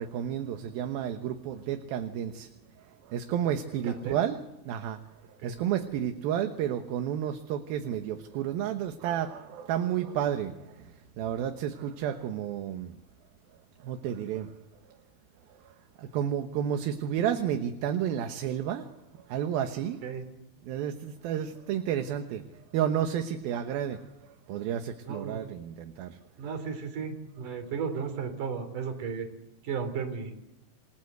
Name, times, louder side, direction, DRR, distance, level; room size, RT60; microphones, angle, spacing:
voice 1, 0.0-2.5 2.8-5.0 5.4-13.0 13.8-14.5 15.6-20.0 20.6-22.4 22.7-26.2, right 9 dB, 75° right, 7 dB, 2.9 m, -31 dB
voice 2, 3.8-4.2 5.4-5.5 20.0-20.2 25.0-25.5 26.4-29.3 29.6-30.3, right 6 dB, 60° right, 7 dB, 4.6 m, -34 dB
28.0 x 19.5 x 8.0 m, 0.91 s
omnidirectional pair, 4.3 m